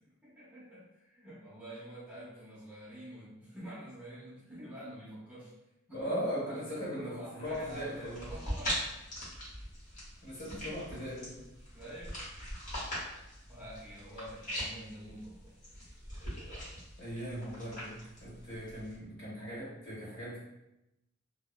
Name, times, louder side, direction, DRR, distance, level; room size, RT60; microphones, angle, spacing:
voice 1, 0.2-5.5 6.1-6.2 6.5-8.8 11.7-12.2 13.5-15.6, right 1 dB, 5° right, -10 dB, 0.7 m, -47 dB
voice 2, 5.9-8.2 10.2-11.4 17.0-17.9 18.2-20.4, equal, 60° left, -8 dB, 1.5 m, -38 dB
sound 1, 7.4-18.9, equal, 40° left, 0.8 m, -42 dB
2.8 x 2.0 x 2.3 m, 0.90 s
head